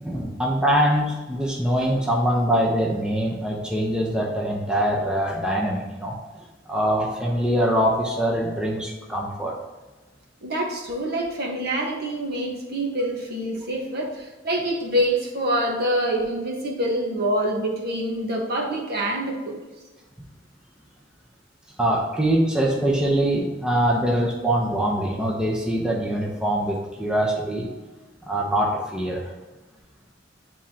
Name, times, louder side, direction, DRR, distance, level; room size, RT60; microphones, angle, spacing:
voice 1, 0.0-9.5 21.8-27.7 28.2-29.2, right 1 dB, 5° right, -3 dB, 0.7 m, -23 dB
voice 2, 10.4-19.6, right 1 dB, 55° right, -1 dB, 1.4 m, -26 dB
9.1 x 3.7 x 2.8 m, 1.2 s
head